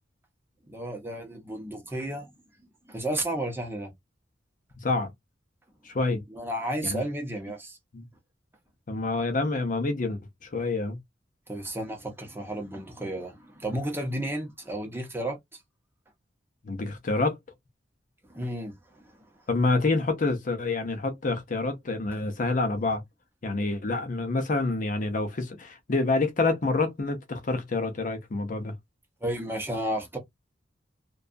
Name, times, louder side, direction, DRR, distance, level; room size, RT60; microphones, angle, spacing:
voice 1, 0.7-2.3 2.9-3.9 6.3-7.8 11.5-15.6 18.2-19.1 29.2-30.2, right 1 dB, 10° right, 0.7 m, -33 dB
voice 2, 5.8-6.2 6.8-7.0 7.9-8.1 8.9-11.0 16.6-17.4 19.5-23.0 23.4-28.7, left 3 dB, 45° left, 0.6 m, -27 dB
2.6 x 2.2 x 2.5 m
head